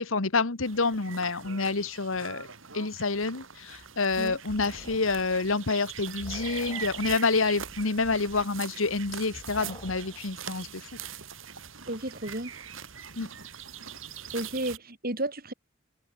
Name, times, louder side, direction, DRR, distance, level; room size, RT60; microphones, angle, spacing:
voice 1, 0.0-2.5 2.7-10.8 13.2-13.3, left 3 dB, 85° left, 1.5 m, -28 dB
sound 1, 0.6-14.8, right 8 dB, 75° right, 5.1 m, -42 dB
sound 2, 3.2-10.3, left 1 dB, 25° left, 3.2 m, -48 dB
voice 2, 11.9-12.5 14.3-15.5, right 1 dB, 45° right, 5.5 m, -32 dB
head